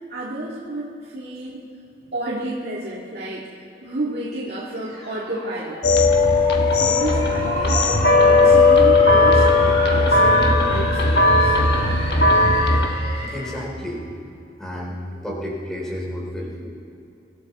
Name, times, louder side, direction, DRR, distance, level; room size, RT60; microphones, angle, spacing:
voice 1, 0.1-1.6 2.1-3.4 3.8-6.1 6.7-11.6, right 1 dB, 65° right, -7 dB, 2.0 m, -31 dB
sound 1, 4.8-13.6, equal, 35° left, 3.0 m, -30 dB
sound 2, 5.8-12.9, left 2 dB, 65° left, 1.3 m, -16 dB
voice 2, 12.7-14.1 14.6-16.7, equal, 5° left, -3 dB, 3.1 m, -32 dB
24.5 x 13.0 x 4.2 m, 2.8 s
head